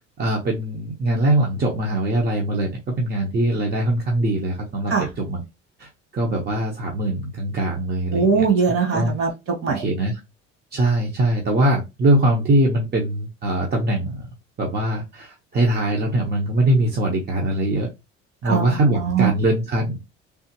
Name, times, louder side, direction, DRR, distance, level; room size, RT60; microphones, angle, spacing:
voice 1, 0.2-5.4 5.8-8.4 8.9-9.2 9.7-10.2 10.7-14.3 14.6-17.9 18.4-20.0, right 1 dB, 35° right, 0 dB, 1.0 m, -22 dB
voice 2, 8.1-9.8 18.4-19.3, right 6 dB, 50° right, 2 dB, 1.9 m, -21 dB
3.5 x 2.4 x 2.9 m, 0.24 s
supercardioid pair, 90°, 30 cm